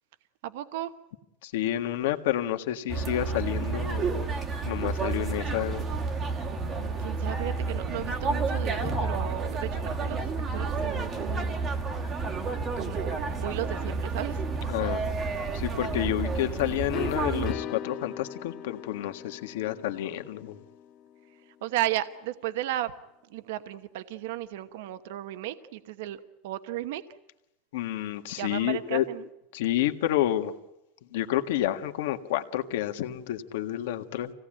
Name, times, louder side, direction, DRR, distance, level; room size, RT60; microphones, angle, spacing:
voice 1, 0.4-0.9 6.5-10.2 10.5-11.6 12.8-14.4 21.6-22.9 23.3-27.0 28.4-29.2, right 13 dB, 60° right, 11 dB, 1.0 m, -34 dB
voice 2, 1.4-4.2 4.6-5.9 8.0-8.1 14.7-15.0 15.5-20.6 27.7-29.1 29.5-30.5 31.1-34.3, left 13 dB, 70° left, 7 dB, 1.7 m, -29 dB
sound 1, 2.9-17.5, right 4 dB, 20° right, 1.3 m, -30 dB
sound 2, 15.8-21.5, left 10 dB, 30° left, 1.0 m, -42 dB
26.5 x 17.5 x 9.0 m, 0.91 s
supercardioid pair, 180°, 0 cm